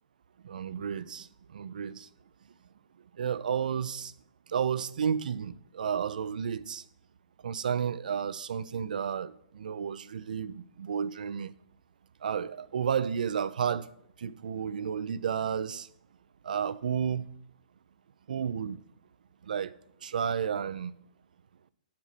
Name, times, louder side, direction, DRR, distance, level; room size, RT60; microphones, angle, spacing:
voice 1, 0.4-1.3 1.5-2.1 3.2-4.1 4.5-6.8 7.4-11.5 12.2-13.9 14.2-15.9 16.4-17.3 18.3-18.8 19.4-19.7 20.0-20.9, right 7 dB, 80° right, 0.5 m, -32 dB
7.4 x 7.3 x 4.2 m
hypercardioid pair, 145°, 4 cm